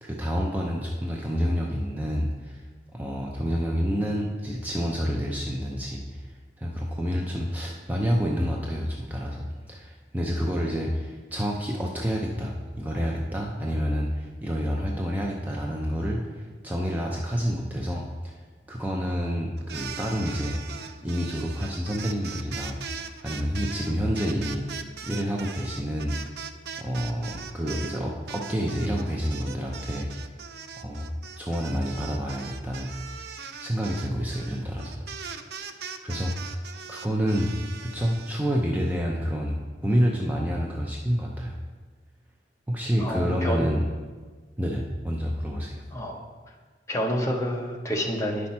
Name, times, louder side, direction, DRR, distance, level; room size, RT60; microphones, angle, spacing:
voice 1, 0.0-2.6 2.9-18.3 18.7-22.8 23.2-26.3 26.8-30.1 30.8-31.1 31.4-35.0 36.0-36.6 36.9-37.5 37.8-41.6 42.7-43.8 44.6-45.8, equal, 10° right, -1 dB, 0.5 m, -28 dB
sound 1, 19.6-28.0 28.3-38.4, right 6 dB, 65° right, 0.5 m, -40 dB
voice 2, 43.0-43.7 45.9-46.2 46.9-48.5, equal, 15° left, 0 dB, 0.8 m, -28 dB
9.6 x 5.9 x 4.3 m, 1.4 s
head